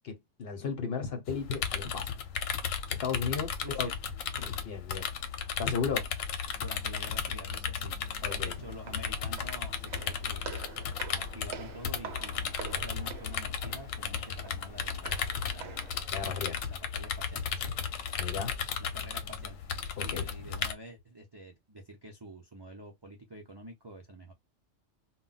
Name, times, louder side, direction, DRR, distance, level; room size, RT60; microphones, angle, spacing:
voice 1, 0.0-2.1 2.9-3.9 4.4-5.1 5.6-6.1 8.2-8.5 16.1-16.6 18.2-18.6 20.0-20.3, left 6 dB, 55° left, 0.9 m, -35 dB
sound 1, 1.3-20.7, left 7 dB, 90° left, 1.0 m, -35 dB
voice 2, 3.6-4.0 6.6-8.0 8.4-10.4 11.1-17.7 18.8-19.6 20.0-24.3, right 1 dB, 45° right, 0.3 m, -48 dB
sound 2, 6.5-19.6, left 2 dB, 5° right, 1.2 m, -57 dB
Walk footsteps, 8.0-16.0, right 7 dB, 65° right, 0.8 m, -47 dB
2.2 x 2.1 x 3.8 m
omnidirectional pair, 1.3 m